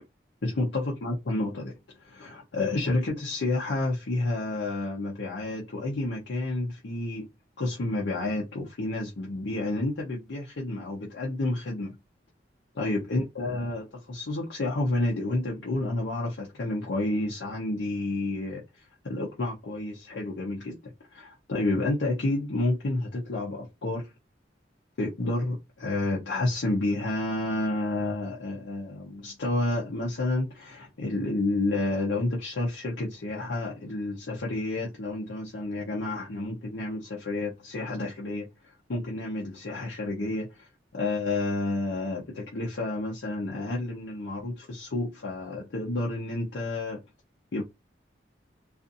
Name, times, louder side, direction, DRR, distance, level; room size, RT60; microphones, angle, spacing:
voice 1, 0.4-7.3 7.6-12.0 12.8-24.1 25.0-47.0 47.5-47.6, left 2 dB, 75° left, 0.6 m, -30 dB
2.5 x 2.5 x 2.6 m
head